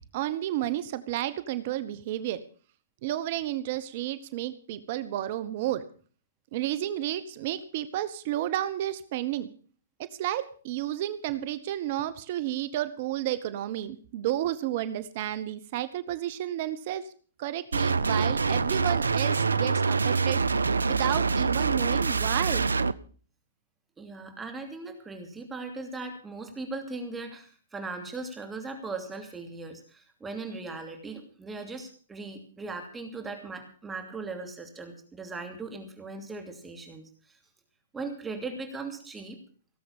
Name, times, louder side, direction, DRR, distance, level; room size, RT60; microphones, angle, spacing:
voice 1, 0.1-2.4 3.0-5.9 6.5-9.5 10.0-17.1 17.4-20.4 20.9-22.7, right 13 dB, 50° right, 14 dB, 1.1 m, -31 dB
sound 1, 17.7-22.9, right 4 dB, 80° right, 0.7 m, -25 dB
voice 2, 24.0-37.4 37.9-39.4, right 3 dB, 10° right, 4 dB, 2.8 m, -39 dB
17.5 x 7.7 x 7.2 m, 0.43 s
figure-of-eight pair, 115°, 0 cm